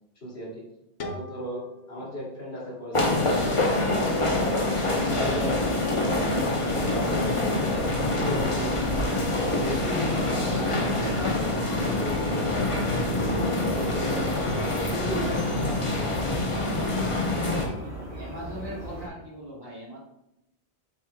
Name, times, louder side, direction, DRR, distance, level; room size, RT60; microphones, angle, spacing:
voice 1, 0.2-0.6 1.0-1.6 1.9-3.3 3.7-8.7 9.1-11.5 11.9-12.3 12.7-14.2 14.7-16.3, equal, 65° left, -5 dB, 3.0 m, -36 dB
sound 1, 1.0-3.8, left 2 dB, 85° left, 1.2 m, -43 dB
sound 2, 2.9-17.7, left 2 dB, 30° left, 1.0 m, -26 dB
sound 3, 4.7-19.1, equal, 75° right, 3.3 m, -37 dB
voice 2, 18.2-20.0, equal, 20° right, -5 dB, 2.3 m, -39 dB
8.3 x 7.9 x 2.3 m, 0.83 s
omnidirectional pair, 1.2 m